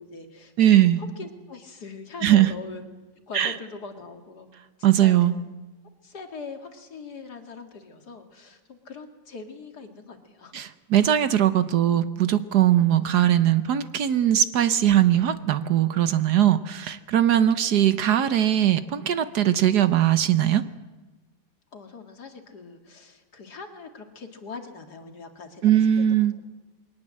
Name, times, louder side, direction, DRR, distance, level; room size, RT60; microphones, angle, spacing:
voice 1, 0.0-2.8 3.3-4.5 4.8-5.4 6.0-10.6 15.1-15.3 21.7-26.3, left 4 dB, 60° left, 5 dB, 2.6 m, -42 dB
voice 2, 0.6-1.0 2.2-2.5 3.3-3.5 4.8-5.3 10.5-20.6 25.6-26.3, right 11 dB, 65° right, 13 dB, 1.4 m, -20 dB
22.0 x 19.0 x 7.6 m, 1.2 s
omnidirectional pair, 2.0 m